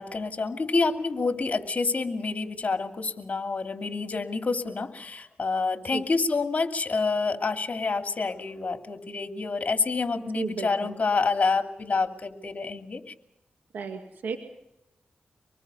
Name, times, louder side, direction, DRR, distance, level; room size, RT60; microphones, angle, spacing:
voice 1, 0.0-13.1, left 4 dB, 50° left, 5 dB, 2.8 m, -28 dB
voice 2, 10.3-10.9 13.7-14.4, right 5 dB, 85° right, 4 dB, 2.1 m, -33 dB
25.5 x 20.0 x 5.5 m, 0.84 s
cardioid pair, 50°, 3 cm